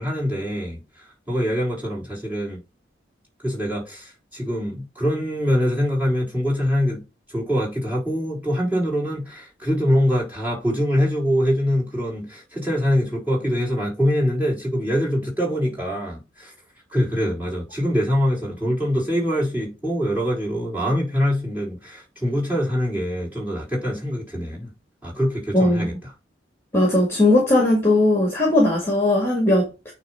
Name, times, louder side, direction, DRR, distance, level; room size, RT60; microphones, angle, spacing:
voice 1, 0.0-2.6 3.4-7.0 7.3-16.5 16.9-24.7 25.0-26.1, equal, 10° right, 4.2 m, -24 dB
voice 2, 25.5-25.9 26.7-29.9, left 1 dB, 15° left, 2.0 m, -18 dB
9.1 x 3.3 x 4.4 m
head